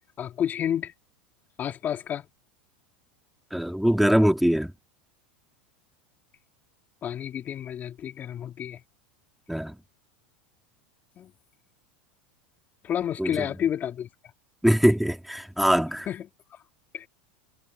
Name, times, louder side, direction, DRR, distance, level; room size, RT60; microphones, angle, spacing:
voice 1, 0.2-0.9 1.6-2.3 7.0-8.8 11.2-11.3 12.8-14.1 16.1-16.2 16.9-17.1, left 9 dB, 35° left, 3.4 m, -30 dB
voice 2, 3.5-4.7 9.5-9.7 13.2-13.5 14.6-16.1, equal, ahead, 2.8 m, -22 dB
hypercardioid pair, 105°, 5 cm